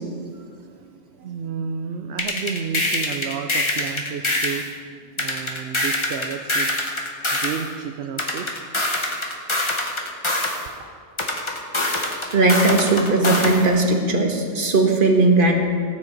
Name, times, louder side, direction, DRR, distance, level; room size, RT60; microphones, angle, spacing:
voice 1, 0.2-4.7 5.0-6.7 7.3-8.7, right 7 dB, 70° right, 5 dB, 0.9 m, -32 dB
sound 1, 2.2-4.7 5.2-7.6 8.2-10.6 11.2-13.6, left 1 dB, 25° left, 1.4 m, -24 dB
voice 2, 12.3-15.5, right 2 dB, 50° right, 2 dB, 1.5 m, -18 dB
18.0 x 9.4 x 4.0 m, 2.2 s
omnidirectional pair, 1.2 m